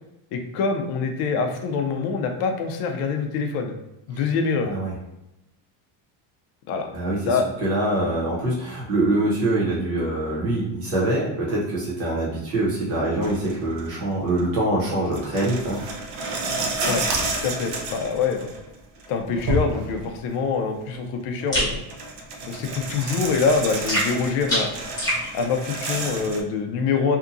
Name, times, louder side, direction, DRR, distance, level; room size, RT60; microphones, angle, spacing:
voice 1, 0.3-3.7 4.1-4.7 6.7-6.9 7.3-7.4 16.9-17.0 17.4-18.5 19.1-21.8 22.5-24.7 25.3-27.2, left 5 dB, 55° left, 4 dB, 0.5 m, -25 dB
voice 2, 4.6-4.9 6.9-15.8, right 1 dB, 35° right, -6 dB, 1.0 m, -24 dB
sound 1, 13.2-13.9 14.4-14.5 15.1-18.7 19.0-20.2 21.4-21.5 21.7-26.4, right 2 dB, 55° right, 0.5 m, -30 dB
sound 2, 21.5-21.8 23.9-25.2, equal, 10° left, 0.8 m, -24 dB
2.8 x 2.3 x 2.5 m, 0.93 s
cardioid pair, 175°, 44 cm